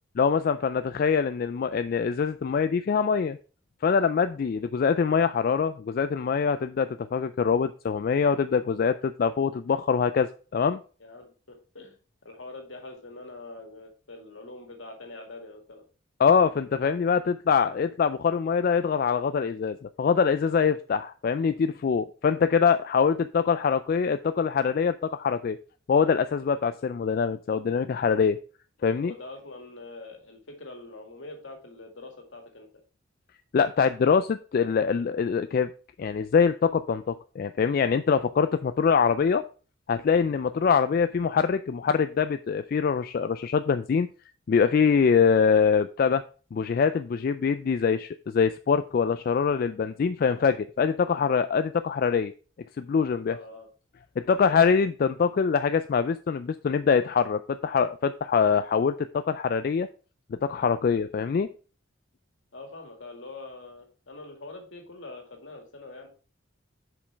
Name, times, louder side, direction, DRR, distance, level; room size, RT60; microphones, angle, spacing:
voice 1, 0.2-3.4 3.8-10.8 16.2-25.6 25.9-28.4 28.8-29.1 33.5-35.7 36.0-39.4 39.9-44.1 44.5-46.2 46.5-52.3 52.8-53.4 54.3-59.9 60.4-61.5, left 6 dB, 50° left, 10 dB, 0.3 m, -24 dB
voice 2, 11.0-15.9 29.0-32.8 53.3-53.7 62.5-66.1, left 2 dB, 75° left, 3 dB, 2.0 m, -44 dB
7.0 x 5.2 x 4.5 m, 0.38 s
head